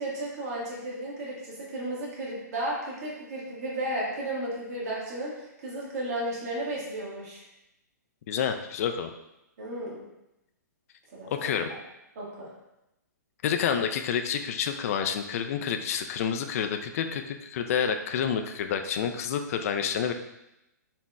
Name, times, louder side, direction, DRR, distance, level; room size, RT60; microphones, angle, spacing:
voice 1, 0.0-7.4 9.6-10.0 11.1-11.8 12.1-12.5, right 1 dB, 60° right, -5 dB, 1.5 m, -34 dB
voice 2, 8.3-9.1 11.3-11.7 13.4-20.1, left 7 dB, 50° left, 7 dB, 0.3 m, -29 dB
4.2 x 3.0 x 2.3 m, 0.89 s
hypercardioid pair, 135°, 10 cm